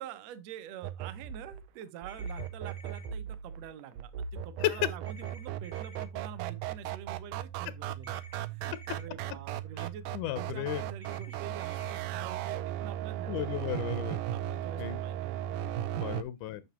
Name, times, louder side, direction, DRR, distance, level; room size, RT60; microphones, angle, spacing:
voice 1, 0.0-8.2 8.5-10.1 10.3-13.5 14.3-15.7, right 9 dB, 70° right, 1.8 m, -47 dB
sound 1, 0.8-16.2, right 11 dB, 85° right, 2.1 m, -37 dB
sound 2, 2.1-3.1 5.1-6.1 8.0-9.0 11.0-12.0, left 1 dB, 25° left, 0.7 m, -53 dB
voice 2, 4.6-5.0 9.8-10.8 11.6-11.7 13.3-14.2 14.8-15.0 15.9-16.6, left 14 dB, 85° left, 2.2 m, -34 dB
9.1 x 6.5 x 2.8 m
omnidirectional pair, 3.6 m